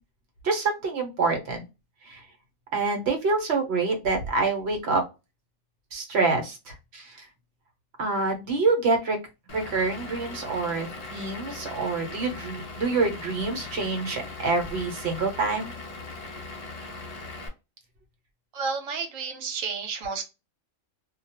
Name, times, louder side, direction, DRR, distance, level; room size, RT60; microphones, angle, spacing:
voice 1, 0.4-1.6 2.0-2.2 2.7-5.0 5.9-7.3 8.0-9.2 9.5-15.7, right 3 dB, 60° right, 4 dB, 1.0 m, -26 dB
Vehicle / Engine, 9.5-17.5, left 3 dB, 45° left, 0.5 m, -39 dB
voice 2, 18.5-20.2, right 5 dB, 85° right, 6 dB, 1.1 m, -31 dB
2.3 x 2.2 x 2.7 m, 0.26 s
omnidirectional pair, 1.3 m